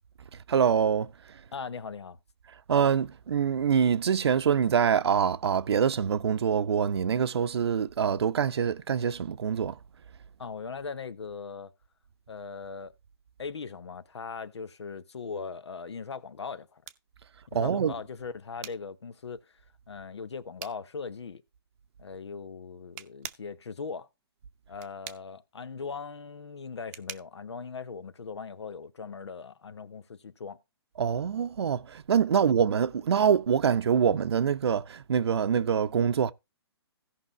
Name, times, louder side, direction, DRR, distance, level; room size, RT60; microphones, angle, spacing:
voice 1, 0.5-1.1 2.7-9.7 17.5-17.9 31.0-36.3, right 7 dB, 70° right, 0.7 m, -25 dB
voice 2, 1.5-2.2 10.4-11.7 12.3-12.9 13.4-16.8 17.5-19.6 19.9-21.4 22.0-24.1 24.7-30.6, left 5 dB, 85° left, 1.1 m, -39 dB
sound 1, 16.1-28.6, right 13 dB, 25° right, 0.7 m, -49 dB
16.5 x 5.7 x 3.0 m
hypercardioid pair, 155°, 14 cm